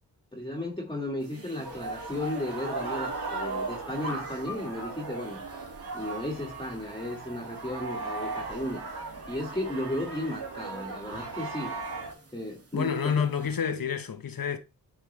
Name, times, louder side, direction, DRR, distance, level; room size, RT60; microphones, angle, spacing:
voice 1, 0.3-5.4 5.9-8.8 9.3-11.7 12.3-13.5, left 1 dB, 10° left, 1.9 m, -34 dB
sound 1, 1.2-13.6, right 1 dB, 40° right, 2.3 m, -47 dB
sound 2, 1.6-12.1, right 3 dB, 75° right, 2.3 m, -37 dB
voice 2, 12.7-14.6, left 7 dB, 65° left, 1.1 m, -28 dB
8.7 x 4.4 x 3.3 m
cardioid pair, 50°, 38 cm